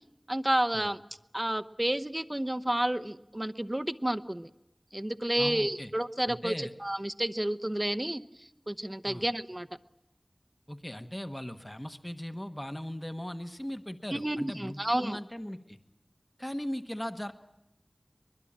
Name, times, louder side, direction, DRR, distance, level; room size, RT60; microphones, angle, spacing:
voice 1, 0.3-1.0 1.3-4.5 4.9-9.7 14.1-15.2, right 1 dB, 25° right, 9 dB, 0.9 m, -30 dB
voice 2, 5.4-5.9 6.3-6.7 9.1-9.2 10.7-15.8 16.4-17.3, equal, 20° left, 8 dB, 1.2 m, -38 dB
23.5 x 21.5 x 8.7 m, 0.91 s
wide cardioid pair, 40°, 0 cm